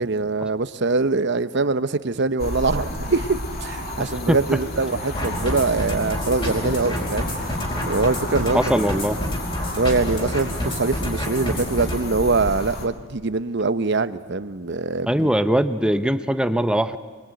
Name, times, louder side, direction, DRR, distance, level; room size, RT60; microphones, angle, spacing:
voice 1, 0.0-7.6 7.9-8.6 9.7-15.3, right 3 dB, 55° right, 12 dB, 0.9 m, -23 dB
sound 1, 2.4-12.9, left 1 dB, 45° left, 2.9 m, -32 dB
sound 2, 5.1-12.0, equal, 25° left, 5.0 m, -28 dB
voice 2, 8.5-9.2 15.1-17.0, equal, 5° right, 10 dB, 0.7 m, -20 dB
26.0 x 22.5 x 9.0 m, 1.4 s
head